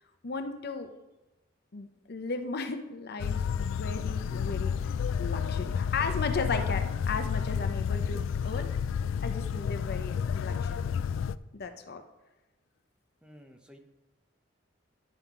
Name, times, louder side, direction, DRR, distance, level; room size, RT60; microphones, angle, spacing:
voice 1, 0.2-0.9 1.7-8.7 9.2-10.9 11.5-12.0, left 4 dB, 55° left, 7 dB, 0.7 m, -36 dB
sound 1, 3.2-11.4, left 7 dB, 85° left, 0.3 m, -30 dB
voice 2, 13.2-13.8, equal, 5° right, 4 dB, 0.7 m, -53 dB
10.5 x 5.6 x 4.6 m, 1.0 s
head